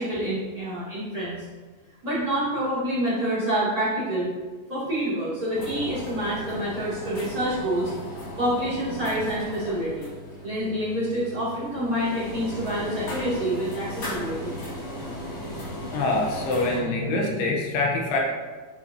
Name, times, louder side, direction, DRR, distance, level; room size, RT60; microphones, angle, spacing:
voice 1, 0.0-1.4 2.0-4.3 4.7-7.9 8.4-10.1 10.4-14.5, right 1 dB, 25° right, -9 dB, 2.4 m, -27 dB
sound 1, 5.5-16.8, equal, 40° left, 3.4 m, -36 dB
voice 2, 15.9-18.2, left 2 dB, 75° left, -1 dB, 2.7 m, -25 dB
9.7 x 7.7 x 2.9 m, 1.4 s
omnidirectional pair, 5.3 m